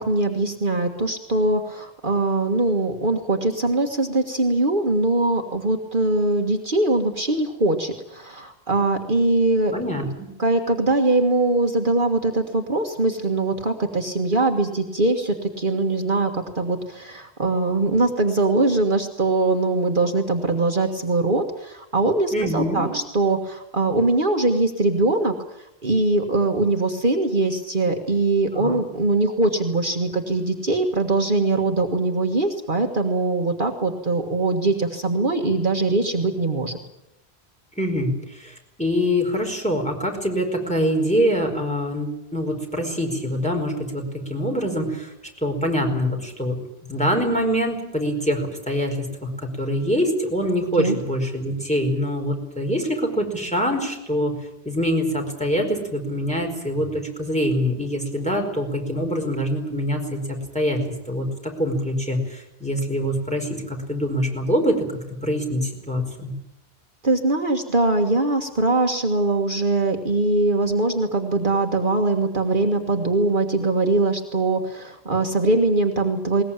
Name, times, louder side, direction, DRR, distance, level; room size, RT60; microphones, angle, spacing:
voice 1, 0.0-9.7 10.4-36.8 50.8-51.0 67.0-76.4, right 2 dB, 50° right, 4 dB, 1.8 m, -22 dB
voice 2, 9.7-10.3 22.3-22.9 28.5-28.8 37.8-45.1 45.4-46.6 46.8-54.3 54.6-64.9 65.2-66.3, equal, 5° left, 1 dB, 4.8 m, -24 dB
21.0 x 19.5 x 8.9 m, 0.87 s
omnidirectional pair, 1.1 m